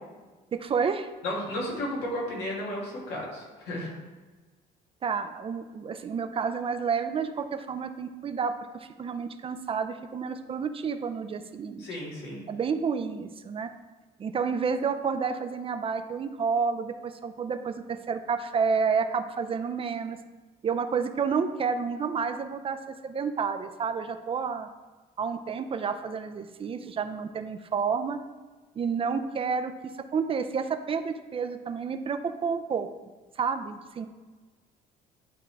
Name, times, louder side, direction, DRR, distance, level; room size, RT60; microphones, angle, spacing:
voice 1, 0.5-1.1 5.0-11.8 12.5-13.7 14.2-20.2 20.6-22.8 23.0-24.7 25.2-28.2 28.8-29.7 30.1-32.9 33.4-34.1, right 6 dB, 35° right, 8 dB, 0.5 m, -30 dB
voice 2, 1.2-3.9 11.8-12.4, left 1 dB, 85° left, -4 dB, 2.2 m, -33 dB
10.5 x 3.6 x 3.4 m, 1.3 s
cardioid pair, 110°, 17 cm